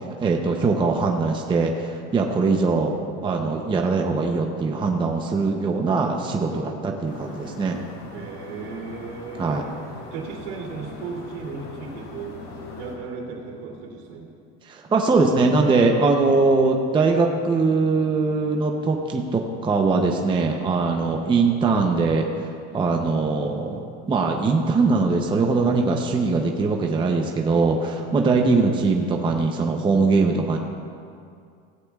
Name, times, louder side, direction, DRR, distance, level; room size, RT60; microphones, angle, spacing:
voice 1, 0.2-2.9 3.2-7.8 9.4-9.7 14.7-22.3 22.7-30.6, right 4 dB, 15° right, 2 dB, 0.6 m, -21 dB
voice 2, 6.2-6.9 8.1-9.8 10.1-12.3 12.8-14.3 20.9-21.1 28.1-28.3, right 4 dB, 90° right, -1 dB, 2.9 m, -36 dB
sound 1, 7.0-13.0, left 2 dB, 55° left, 3.4 m, -40 dB
16.5 x 14.5 x 2.4 m, 2.4 s
cardioid pair, 140°, 34 cm